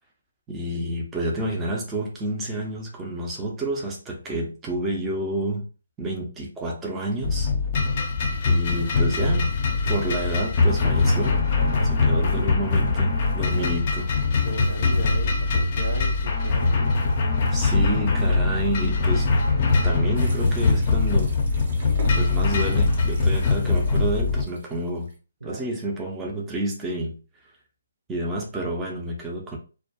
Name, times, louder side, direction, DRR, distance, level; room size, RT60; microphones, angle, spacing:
voice 1, 0.5-5.7 6.0-7.5 8.5-9.5 9.9-11.4 11.8-14.1 17.5-19.3 19.8-21.4 22.1-25.1 25.4-27.2 28.1-29.6, right 1 dB, 15° right, -1 dB, 0.5 m, -29 dB
sound 1, 7.2-24.4, left 3 dB, 40° left, 0.5 m, -22 dB
voice 2, 11.4-12.5 13.4-13.7 14.4-16.9 25.4-25.7, right 3 dB, 70° right, 2 dB, 0.7 m, -36 dB
sound 2, 20.1-25.2, right 2 dB, 50° right, 1.0 m, -43 dB
2.2 x 2.1 x 2.7 m, 0.34 s
figure-of-eight pair, 145°, 0 cm